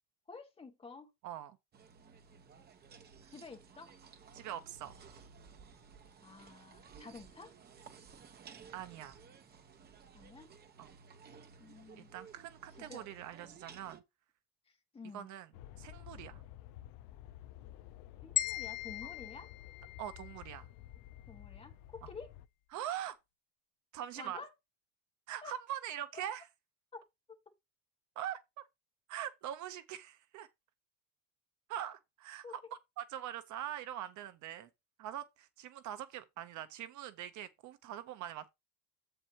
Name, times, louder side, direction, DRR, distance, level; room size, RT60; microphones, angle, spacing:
voice 1, 0.3-1.1 3.3-3.9 6.2-7.5 10.1-10.5 11.6-12.1 12.8-13.1 13.4-13.6 14.7-15.3 18.2-19.5 21.2-22.3 24.2-24.5 25.4-25.5 26.9-27.4 32.4-32.5, left 4 dB, 15° left, 1.7 m, -50 dB
voice 2, 1.2-1.6 3.2-3.3 4.3-4.9 8.7-9.2 10.8-10.9 12.0-14.0 15.1-15.5 15.8-16.4 19.0-19.1 20.0-20.7 22.7-23.2 23.9-24.4 25.3-26.5 28.2-28.6 29.1-30.5 31.7-32.6 33.0-34.7 35.0-38.5, right 11 dB, 50° right, 0.8 m, -43 dB
sound 1, 1.7-14.0, right 6 dB, 25° right, 1.0 m, -56 dB
sound 2, 15.5-22.5, left 13 dB, 55° left, 0.6 m, -52 dB
sound 3, 18.4-20.5, left 17 dB, 90° left, 1.9 m, -38 dB
8.0 x 7.6 x 2.9 m
cardioid pair, 180°, 39 cm